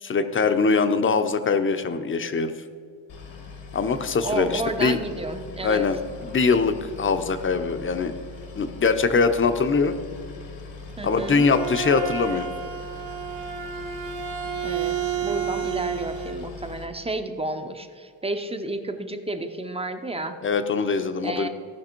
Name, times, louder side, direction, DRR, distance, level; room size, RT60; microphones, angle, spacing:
voice 1, 0.0-2.5 3.7-5.0 5.6-8.1 8.5-9.9 11.0-12.5 20.4-21.5, left 4 dB, 25° left, 9 dB, 0.6 m, -22 dB
Boat Water vehicle, 3.1-16.9, left 3 dB, 90° left, 1.8 m, -41 dB
voice 2, 4.2-5.9 11.0-11.5 14.6-20.4 21.2-21.5, right 2 dB, 15° right, 7 dB, 0.6 m, -31 dB
Bowed string instrument, 10.9-16.4, right 8 dB, 85° right, 1.3 m, -31 dB
16.0 x 6.0 x 4.4 m, 2.4 s
wide cardioid pair, 155°, 45 cm